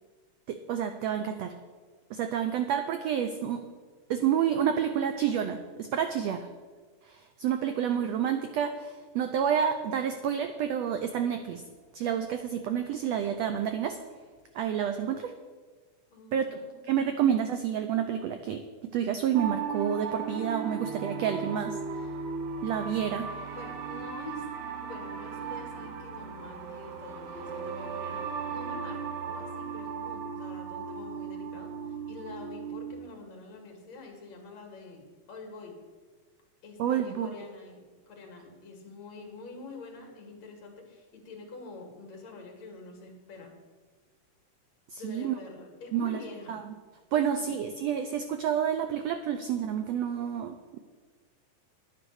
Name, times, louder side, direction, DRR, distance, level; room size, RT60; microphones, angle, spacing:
voice 1, 0.5-1.5 2.1-3.6 4.1-6.5 7.0-11.6 11.9-14.0 14.5-15.3 16.3-18.6 18.9-22.1 22.6-23.3 36.8-37.3 44.9-45.4 45.9-46.2 46.5-46.7 47.1-50.8, right 9 dB, 90° right, 8 dB, 1.4 m, -29 dB
voice 2, 16.1-17.2 23.5-24.5 24.8-35.0 35.3-35.8 36.6-43.5 45.0-46.6 47.1-47.6, left 3 dB, 60° left, 2 dB, 2.9 m, -46 dB
sound 1, 19.3-32.9, right 5 dB, 70° right, 2.3 m, -37 dB
10.5 x 9.4 x 6.4 m, 1.4 s
omnidirectional pair, 3.7 m